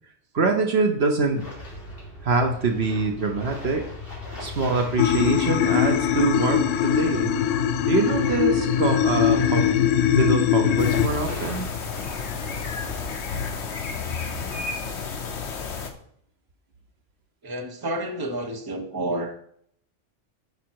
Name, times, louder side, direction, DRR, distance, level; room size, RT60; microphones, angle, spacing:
voice 1, 0.3-1.4 2.2-3.9 4.4-7.3 7.9-9.7 10.1-11.7, right 3 dB, 60° right, 4 dB, 1.1 m, -24 dB
sound 1, 1.3-13.0, left 2 dB, 50° left, 3.2 m, -38 dB
sound 2, 5.0-11.1, left 9 dB, 80° left, 0.9 m, -21 dB
sound 3, 10.8-15.9, left 5 dB, 65° left, 1.2 m, -31 dB
voice 2, 17.4-19.3, right 1 dB, 20° right, 3 dB, 1.0 m, -30 dB
9.3 x 4.9 x 4.6 m, 0.67 s
omnidirectional pair, 1.3 m